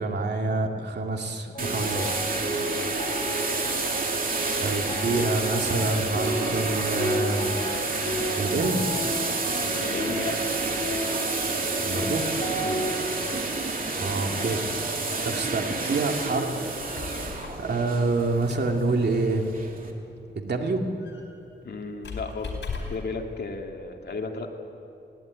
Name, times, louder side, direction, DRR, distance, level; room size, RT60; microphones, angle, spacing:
voice 1, 0.0-2.1 4.6-7.5 8.4-8.8 11.8-12.3 14.0-14.6 15.2-16.9 17.6-19.4 20.4-20.9, right 3 dB, 65° right, 2 dB, 2.4 m, -27 dB
sound 1, 1.5-13.2, equal, 40° left, 5.7 m, -32 dB
sound 2, 1.6-19.9, right 3 dB, 50° right, 2.6 m, -30 dB
voice 2, 9.8-10.4 12.6-12.8 21.6-22.6 22.9-24.5, left 4 dB, 65° left, 2 dB, 2.4 m, -34 dB
Squeak, 16.5-23.2, left 4 dB, 85° left, 4.6 m, -40 dB
20.5 x 17.0 x 9.5 m, 2.8 s
wide cardioid pair, 105°, 19 cm